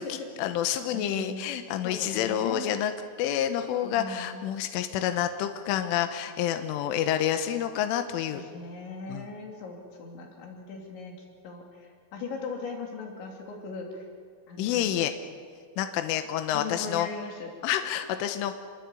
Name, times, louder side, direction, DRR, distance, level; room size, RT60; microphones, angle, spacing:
voice 1, 0.0-2.9 3.2-8.4 9.1-9.3 14.6-15.1 15.8-17.1 17.6-18.5, left 10 dB, 85° left, 7 dB, 3.6 m, -28 dB
voice 2, 0.9-1.4 1.8-2.7 3.8-4.4 8.3-11.1 11.4-14.0 14.5-14.9 16.5-17.5, left 4 dB, 65° left, 1 dB, 5.1 m, -39 dB
27.5 x 23.0 x 8.5 m, 2.1 s
omnidirectional pair, 5.7 m